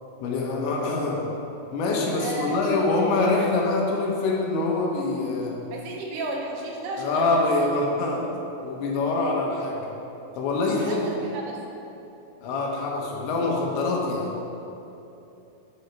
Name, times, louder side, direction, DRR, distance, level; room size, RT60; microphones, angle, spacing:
voice 1, 0.2-1.2 1.7-5.6 7.0-8.2 8.6-9.9 10.3-11.1 12.4-14.3, left 3 dB, 75° left, -1 dB, 3.2 m, -25 dB
voice 2, 2.2-2.6 5.7-7.7 10.8-11.6, right 2 dB, 80° right, 0 dB, 3.0 m, -33 dB
10.5 x 6.3 x 5.7 m, 2.9 s
omnidirectional pair, 5.6 m